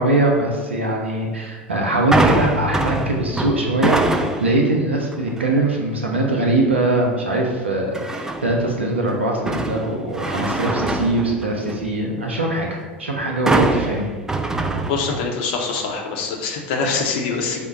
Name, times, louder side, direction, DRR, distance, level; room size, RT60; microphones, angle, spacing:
voice 1, 0.0-14.1, right 2 dB, 85° right, 0 dB, 0.5 m, -21 dB
sound 1, 2.1-4.6 5.1-5.5 7.9-8.6 9.1-11.9 13.5-15.4 15.7-15.9, right 2 dB, 10° right, 0.3 m, -23 dB
voice 2, 14.9-17.7, left 4 dB, 60° left, 1 dB, 0.7 m, -24 dB
5.2 x 2.1 x 3.7 m, 1.4 s
figure-of-eight pair, 80°, 6 cm